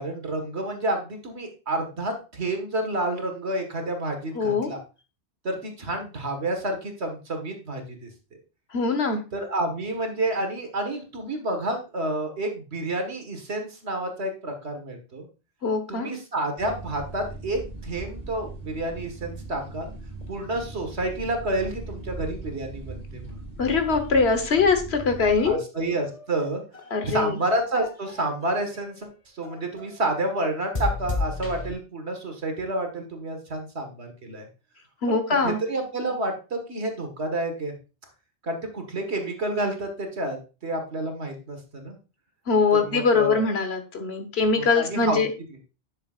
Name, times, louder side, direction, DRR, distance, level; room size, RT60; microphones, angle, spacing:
voice 1, 0.0-4.8 5.4-8.1 9.3-15.3 15.9-19.9 20.3-23.4 25.4-26.6 27.0-29.1 29.3-34.5 35.1-35.2 35.4-37.7 38.4-40.4 40.6-42.0 42.8-43.4 44.6-45.2, right 1 dB, 70° right, 4 dB, 1.9 m, -29 dB
voice 2, 4.3-4.7 8.7-9.2 15.6-16.1 23.6-25.6 26.9-27.4 35.0-35.6 42.5-45.3, left 4 dB, 70° left, 7 dB, 1.5 m, -22 dB
sound 1, 16.6-25.5, right 2 dB, 35° right, 2.6 m, -39 dB
sound 2, 25.8-28.9 29.4-30.0 30.7-31.7, left 3 dB, 30° left, 1.4 m, -33 dB
11.0 x 6.7 x 2.5 m, 0.31 s
omnidirectional pair, 1.1 m